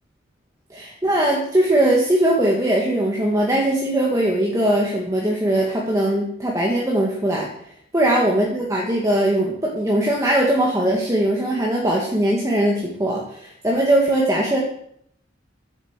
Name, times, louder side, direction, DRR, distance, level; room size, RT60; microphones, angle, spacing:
voice 1, 0.7-7.5 7.9-14.6, right 1 dB, 15° right, -3 dB, 1.9 m, -20 dB
11.5 x 8.5 x 7.4 m, 0.70 s
head